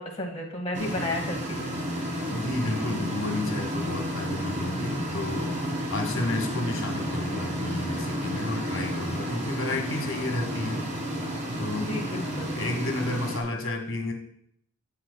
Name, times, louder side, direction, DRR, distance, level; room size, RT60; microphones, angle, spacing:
voice 1, 0.0-1.7 4.9-5.3 7.8-7.9 8.6-8.8 11.8-12.6, left 1 dB, 25° left, 0 dB, 0.9 m, -34 dB
sound 1, 0.7-13.4, equal, 35° right, 1.5 m, -31 dB
voice 2, 2.3-10.8 11.6-11.9 12.4-14.1, left 2 dB, 65° left, 4 dB, 1.3 m, -32 dB
16.0 x 5.7 x 2.2 m, 0.69 s
head